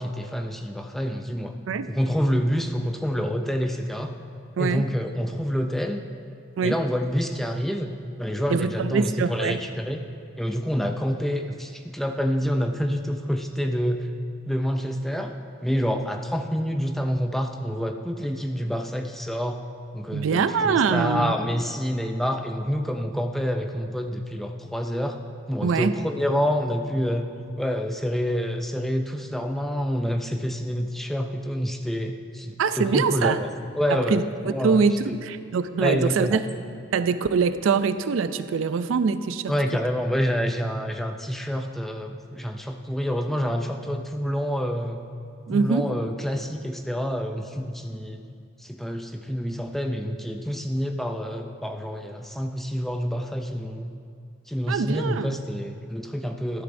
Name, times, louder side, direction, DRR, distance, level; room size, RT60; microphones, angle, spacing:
voice 1, 0.0-1.5 1.9-4.1 4.6-6.0 6.6-7.9 8.2-10.0 10.4-14.1 14.5-15.3 15.6-19.6 19.9-25.2 25.5-27.3 27.6-33.5 33.7-35.2 35.8-36.4 39.5-45.0 45.5-48.2 48.6-53.9 54.5-56.6, equal, ahead, 4 dB, 0.4 m, -27 dB
voice 2, 8.5-9.6 20.1-21.3 25.6-25.9 32.6-33.4 33.9-36.5 36.9-39.5 45.5-45.9 54.7-55.3, right 5 dB, 85° right, 12 dB, 0.4 m, -24 dB
13.0 x 10.0 x 2.6 m, 2.5 s
head